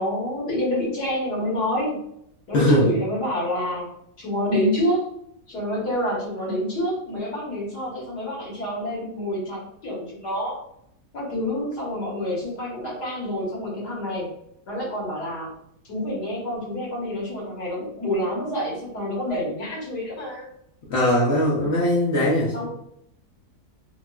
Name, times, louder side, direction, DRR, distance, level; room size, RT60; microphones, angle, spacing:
voice 1, 0.0-2.0 2.5-3.9 4.2-5.1 5.5-10.6 11.1-14.3 14.7-15.5 15.9-20.5 22.5-22.7, left 1 dB, 85° left, -5 dB, 1.8 m, -27 dB
voice 2, 2.5-2.9 20.9-22.7, left 1 dB, 60° left, -5 dB, 0.7 m, -20 dB
3.5 x 2.5 x 2.2 m, 0.76 s
omnidirectional pair, 1.7 m